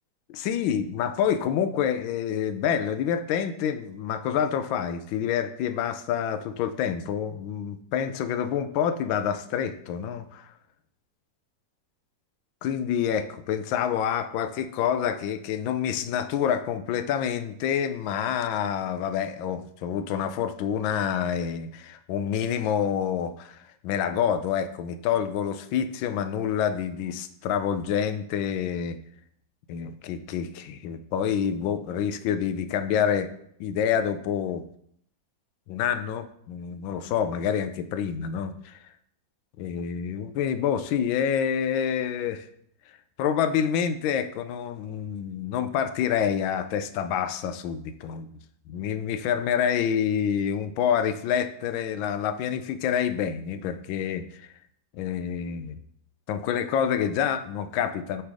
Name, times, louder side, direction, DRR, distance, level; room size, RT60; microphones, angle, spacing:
voice 1, 0.3-10.5 12.6-29.0 29.7-33.3 33.6-34.6 35.7-38.8 39.6-42.5 43.2-48.3 48.7-54.5 54.9-55.8 56.3-58.2, left 8 dB, 85° left, 10 dB, 1.3 m, -27 dB
7.7 x 3.4 x 4.8 m, 0.70 s
omnidirectional pair, 2.1 m